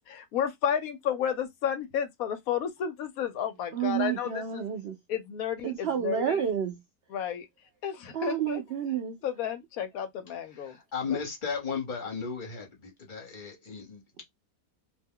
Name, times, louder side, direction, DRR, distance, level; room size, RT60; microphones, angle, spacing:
voice 1, 0.1-4.7 5.1-6.5 7.1-7.5 7.8-8.6 9.2-10.8 11.1-11.2, left 8 dB, 70° left, 1.0 m, -32 dB
voice 2, 3.7-4.9 5.6-6.8 8.1-9.2, right 9 dB, 80° right, 0.5 m, -30 dB
voice 3, 10.6-14.2, left 6 dB, 35° left, 1.1 m, -35 dB
2.7 x 2.2 x 3.5 m
omnidirectional pair, 1.7 m